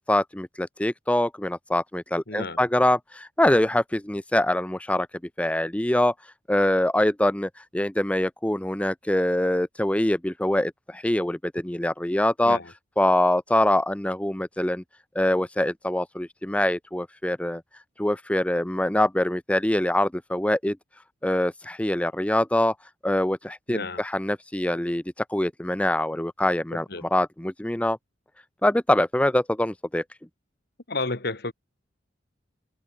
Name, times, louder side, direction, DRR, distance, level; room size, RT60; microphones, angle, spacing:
voice 1, 0.0-5.1 5.4-6.1 6.5-12.6 13.0-14.8 15.2-17.6 18.0-20.8 21.2-22.7 23.0-25.0 25.3-26.8 27.1-28.0 28.6-30.0, left 1 dB, 5° left, 0.6 m, -24 dB
voice 2, 2.3-2.7 12.4-12.7 23.7-24.0 26.7-27.1 30.9-31.5, left 3 dB, 55° left, 2.0 m, -31 dB
open air
head